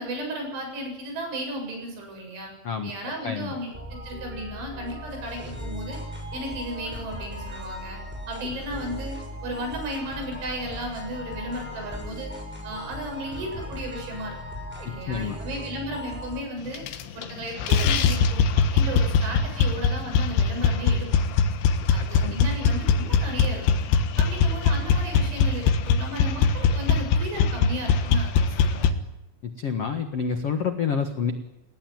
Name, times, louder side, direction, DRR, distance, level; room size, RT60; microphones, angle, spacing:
voice 1, 0.0-2.5 2.8-3.7 4.0-6.0 6.3-8.0 8.3-9.2 9.4-12.3 12.6-14.4 14.8-16.8 17.1-21.4 21.9-23.6 24.2-29.0, right 1 dB, 75° right, 2 dB, 10.0 m, -34 dB
voice 2, 3.2-3.5 15.1-15.4 22.2-22.3 29.6-31.3, left 6 dB, 90° left, 6 dB, 1.3 m, -27 dB
sound 1, 3.7-16.4, left 1 dB, ahead, 7.1 m, -37 dB
sound 2, 16.7-17.3 17.6-28.9, left 5 dB, 75° left, 3.6 m, -22 dB
29.0 x 18.5 x 9.5 m, 0.94 s
omnidirectional pair, 5.5 m